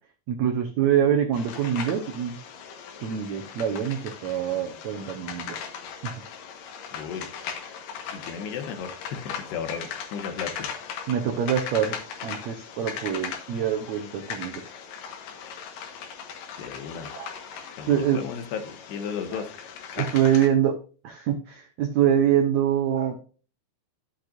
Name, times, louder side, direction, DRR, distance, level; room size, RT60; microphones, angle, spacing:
voice 1, 0.3-2.4 3.0-5.6 6.0-6.1 11.1-12.0 12.2-14.7 17.1-18.2 19.3-19.4 20.0-20.8 21.0-23.2, right 9 dB, 85° right, 5 dB, 1.6 m, -25 dB
sound 1, 1.3-20.5, left 7 dB, 65° left, 2.7 m, -38 dB
voice 2, 6.9-7.3 8.1-10.7 16.6-17.1 17.8-19.5 20.0-20.1, left 7 dB, 80° left, 6 dB, 3.5 m, -34 dB
12.0 x 7.9 x 2.5 m, 0.37 s
omnidirectional pair, 4.6 m